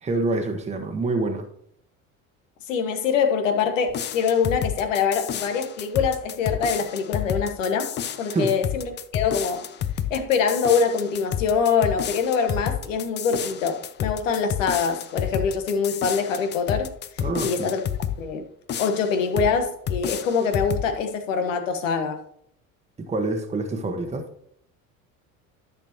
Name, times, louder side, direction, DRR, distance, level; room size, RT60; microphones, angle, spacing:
voice 1, 0.0-1.5 8.3-8.5 17.2-17.7 23.0-24.3, right 2 dB, 15° right, 1.2 m, -26 dB
voice 2, 2.7-7.9 8.2-9.7 10.1-16.9 17.4-17.8 18.2-18.5 18.8-22.2, left 6 dB, 65° left, 1.3 m, -24 dB
sound 1, 3.9-18.2 18.7-19.6 19.9-20.9, left 9 dB, 25° left, 0.6 m, -30 dB
13.0 x 6.6 x 3.0 m
figure-of-eight pair, 65°, 41 cm